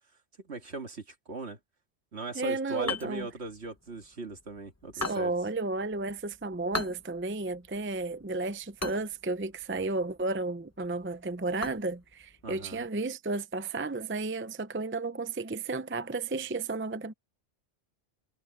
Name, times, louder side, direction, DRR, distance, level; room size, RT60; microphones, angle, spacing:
voice 1, 0.4-1.6 2.1-5.3 12.4-12.8, right 3 dB, 65° right, 2.3 m, -39 dB
voice 2, 2.3-3.3 5.0-17.1, right 3 dB, 15° right, 0.6 m, -33 dB
sound 1, 2.8-12.9, left 3 dB, 15° left, 0.8 m, -42 dB
omnidirectional pair, 1.2 m